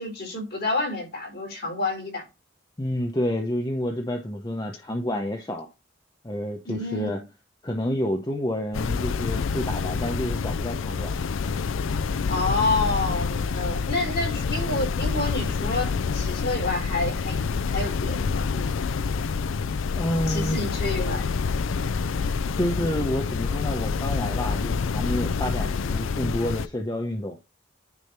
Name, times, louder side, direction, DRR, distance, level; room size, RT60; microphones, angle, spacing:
voice 1, 0.0-2.2 6.6-7.1 12.3-17.4 17.7-18.7 20.3-21.3, left 2 dB, 55° left, 5.0 m, -28 dB
voice 2, 2.8-5.7 6.2-7.2 7.6-11.1 20.0-20.6 22.5-27.4, left 1 dB, 20° left, 0.8 m, -29 dB
sound 1, 8.7-26.7, left 5 dB, 75° left, 0.5 m, -27 dB
9.8 x 3.5 x 4.3 m
head